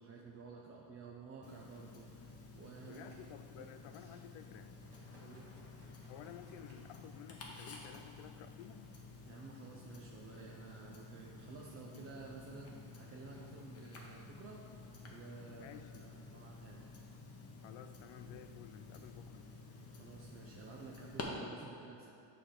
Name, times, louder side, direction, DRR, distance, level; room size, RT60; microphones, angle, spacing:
voice 1, 0.0-3.2 3.6-3.7 5.2-5.6 9.2-14.6 15.1-16.9 19.9-22.1, right 4 dB, 30° right, -2 dB, 0.4 m, -53 dB
Tick-tock, 1.4-21.2, left 4 dB, 30° left, 0.8 m, -52 dB
Domestic sounds home sounds, 2.7-3.4 3.7-4.3 4.9-7.2 8.1-8.3, right 1 dB, 55° right, 1.6 m, -66 dB
voice 2, 2.8-4.8 6.1-8.9 15.5-16.1 17.6-19.4, left 10 dB, 65° left, 10 dB, 0.5 m, -53 dB
7.1 x 3.4 x 5.7 m, 2.5 s
cardioid pair, 145°, 48 cm